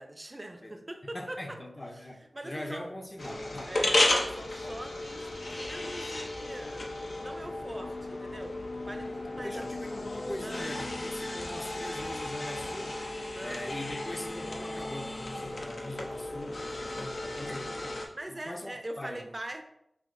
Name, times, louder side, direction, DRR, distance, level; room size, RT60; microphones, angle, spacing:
voice 1, 0.0-1.6 2.3-2.9 3.7-4.1 4.3-6.9 7.2-8.6 8.8-9.7 10.4-10.7 13.4-13.6 18.1-19.6, right 1 dB, 30° right, 6 dB, 0.5 m, -42 dB
voice 2, 0.6-3.7 9.4-13.1 13.4-19.3, left 1 dB, 25° left, 4 dB, 0.6 m, -42 dB
sound 1, 3.2-18.1, left 1 dB, 70° left, 0.6 m, -34 dB
5.6 x 2.7 x 2.5 m, 0.77 s
wide cardioid pair, 60°, 0 cm